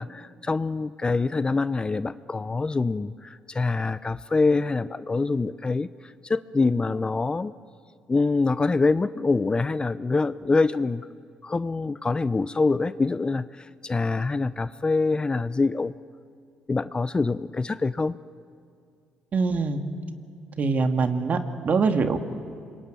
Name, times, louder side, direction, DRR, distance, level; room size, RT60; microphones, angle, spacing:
voice 1, 0.0-7.5 8.1-11.1 11.4-15.9 16.7-18.1, left 3 dB, 25° left, 15 dB, 0.7 m, -25 dB
voice 2, 19.3-19.9 20.6-22.2, right 4 dB, 50° right, 6 dB, 2.2 m, -23 dB
26.5 x 22.5 x 9.3 m, 2.3 s
supercardioid pair, 60°, 3 cm